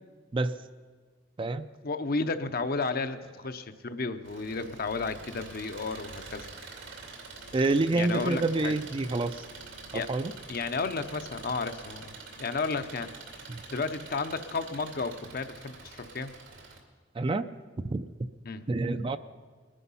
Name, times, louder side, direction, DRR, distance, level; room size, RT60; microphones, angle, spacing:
voice 1, 1.8-6.5 7.9-8.8 9.9-10.1 10.5-12.1 12.4-13.1 13.7-16.3 18.4-18.6, left 4 dB, 55° left, 9 dB, 0.7 m, -32 dB
Engine, 4.2-16.8, right 3 dB, 85° right, 2.4 m, -46 dB
voice 2, 7.5-9.3 9.9-10.3 13.5-13.6 17.2-17.5 17.9-18.3 18.7-19.2, right 2 dB, 30° right, 11 dB, 0.4 m, -27 dB
21.5 x 10.0 x 5.6 m, 1.5 s
head